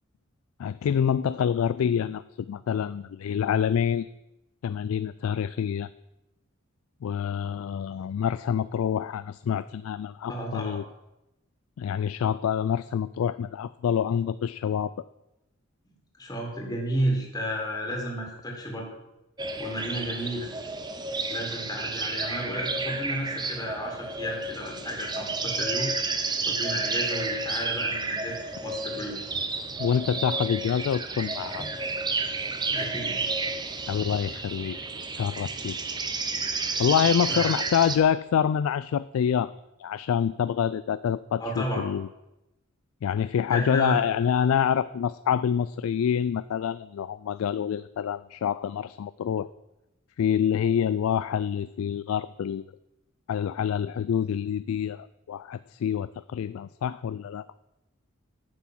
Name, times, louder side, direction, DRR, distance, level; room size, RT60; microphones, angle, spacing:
voice 1, 0.6-4.1 4.6-5.9 7.0-10.8 11.8-14.9 29.8-31.6 33.9-34.8 35.1-35.8 36.8-39.5 39.8-42.1 43.0-49.5 50.2-52.6 53.3-57.5, left 8 dB, 90° left, 15 dB, 0.3 m, -26 dB
voice 2, 10.3-10.8 16.2-18.9 19.6-20.5 21.3-25.9 26.5-29.2 32.7-33.2 37.3-37.5 41.4-41.8 43.5-44.0, equal, 20° left, 0 dB, 1.9 m, -32 dB
sound 1, 19.4-38.0, right 3 dB, 20° right, 0.8 m, -31 dB
10.0 x 6.0 x 7.4 m, 0.94 s
head